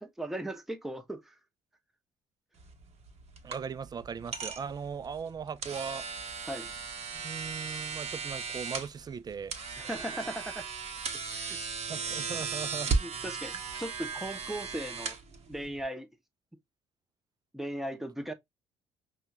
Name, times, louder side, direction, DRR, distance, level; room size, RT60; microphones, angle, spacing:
voice 1, 0.0-1.3 6.4-6.7 9.8-10.6 11.3-11.6 12.9-15.2 15.5-16.1 17.5-18.3, right 1 dB, ahead, 0.8 m, -38 dB
sound 1, 2.6-15.8, right 5 dB, 40° right, 0.9 m, -37 dB
voice 2, 3.4-6.0 7.1-9.5 11.9-12.9, right 6 dB, 25° right, 0.4 m, -38 dB
5.4 x 2.3 x 2.9 m
figure-of-eight pair, 50°, 17 cm